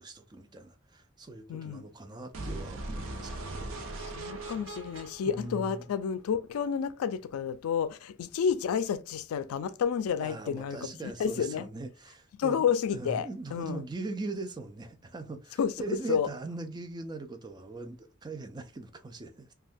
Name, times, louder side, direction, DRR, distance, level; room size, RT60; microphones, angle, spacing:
voice 1, 0.0-3.8 5.2-5.8 10.2-12.6 12.9-19.5, right 3 dB, 20° right, 0.3 m, -40 dB
voice 2, 1.5-1.8 4.0-10.9 11.2-11.7 12.4-13.8 15.6-15.7 16.1-16.3, left 7 dB, 90° left, 0.3 m, -30 dB
sound 1, 2.3-6.3, right 2 dB, 75° right, 0.6 m, -40 dB
2.6 x 2.2 x 3.4 m
head